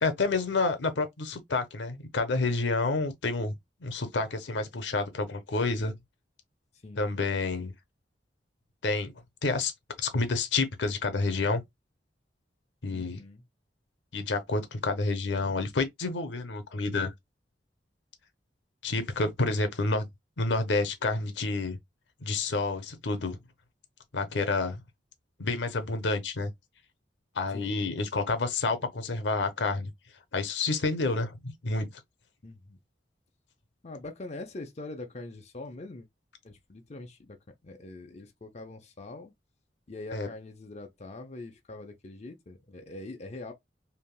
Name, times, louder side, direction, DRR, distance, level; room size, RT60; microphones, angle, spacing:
voice 1, 0.0-3.5 3.8-5.9 7.0-7.7 8.8-9.1 9.4-9.7 10.0-11.6 12.8-13.2 14.1-17.1 18.8-20.1 20.4-21.8 22.2-23.4 24.1-24.8 25.4-26.5 27.4-29.9 30.3-31.9 40.1-40.3, left 3 dB, 80° left, 0.7 m, -29 dB
voice 2, 12.9-13.4 27.5-27.9 32.4-32.8 33.8-36.1 36.4-37.4 37.6-39.3 39.9-43.5, left 2 dB, 40° left, 0.6 m, -43 dB
3.4 x 2.7 x 2.3 m
head